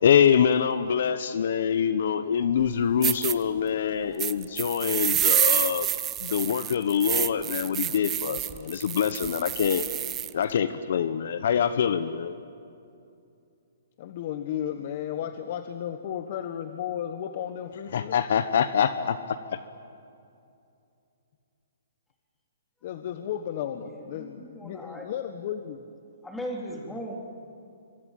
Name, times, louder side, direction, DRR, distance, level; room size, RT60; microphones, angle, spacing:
voice 1, 0.0-5.9 6.2-9.9 10.3-12.3 17.9-19.6, left 8 dB, 60° left, 12 dB, 1.1 m, -25 dB
sound 1, 2.6-2.7 3.0-3.3 4.2-10.3, right 12 dB, 20° right, 0.7 m, -28 dB
voice 2, 14.0-18.2 22.8-25.8, left 10 dB, 45° left, 8 dB, 1.4 m, -34 dB
voice 3, 23.8-25.1 26.2-27.2, equal, 5° left, 1 dB, 3.5 m, -38 dB
26.0 x 24.0 x 9.2 m, 2.6 s
hypercardioid pair, 155°, 0 cm